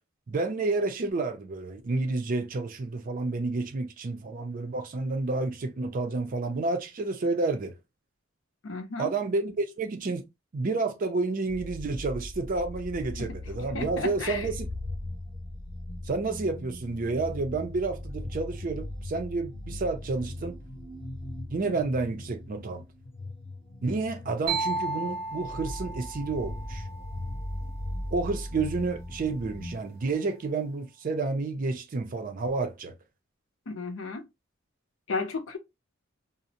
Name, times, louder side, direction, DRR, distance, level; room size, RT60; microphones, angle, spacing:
voice 1, 0.3-7.7 9.0-10.3 10.5-14.7 16.1-20.6 21.5-22.9 23.8-26.9 28.1-32.9, right 3 dB, 45° right, 0.4 m, -30 dB
voice 2, 8.6-9.2 13.2-13.3 13.7-14.5 33.7-34.2 35.1-35.6, left 3 dB, 70° left, 0.6 m, -33 dB
sound 1, 11.5-29.8, left 1 dB, 30° left, 0.6 m, -39 dB
sound 2, 24.5-28.2, right 3 dB, 75° right, 0.7 m, -35 dB
2.5 x 2.0 x 2.7 m
head